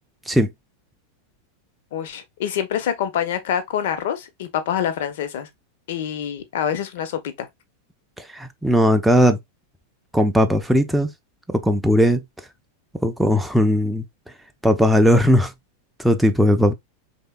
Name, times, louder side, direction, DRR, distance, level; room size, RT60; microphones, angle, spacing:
voice 1, 1.9-5.5 5.9-7.5, left 9 dB, 55° left, 0.7 m, -26 dB
voice 2, 8.2-9.4 10.1-11.1 11.5-12.2 13.0-14.1 14.6-15.5 16.0-16.7, equal, 5° right, 0.5 m, -18 dB
4.3 x 3.3 x 2.3 m
figure-of-eight pair, 90°, 0 cm